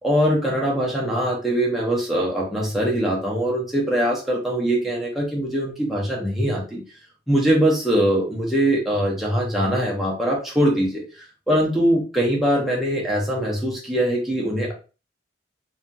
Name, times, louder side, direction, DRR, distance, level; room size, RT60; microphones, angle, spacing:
voice 1, 0.0-6.8 7.3-14.7, equal, ahead, -4 dB, 0.7 m, -22 dB
2.7 x 2.3 x 2.6 m, 0.34 s
head